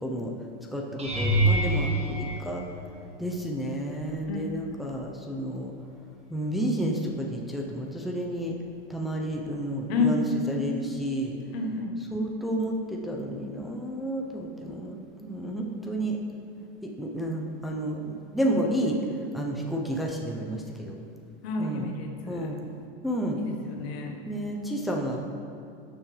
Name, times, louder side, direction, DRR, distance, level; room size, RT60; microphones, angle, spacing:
voice 1, 0.0-0.3 0.7-2.6 3.2-5.7 6.3-8.5 8.9-11.3 12.1-16.2 16.8-19.0 19.3-21.0 21.6-21.9 22.3-22.6 23.0-23.4 24.3-25.3, right 1 dB, ahead, -1 dB, 0.8 m, -31 dB
sound 1, 1.0-3.3 4.0-4.4 4.8-4.9 9.3-9.4, right 1 dB, 20° right, 1.5 m, -27 dB
voice 2, 9.9-10.2 11.5-11.9 21.4-22.6 23.4-24.2, left 4 dB, 75° left, 3 dB, 1.4 m, -30 dB
11.5 x 7.2 x 3.4 m, 2.6 s
hypercardioid pair, 115°, 31 cm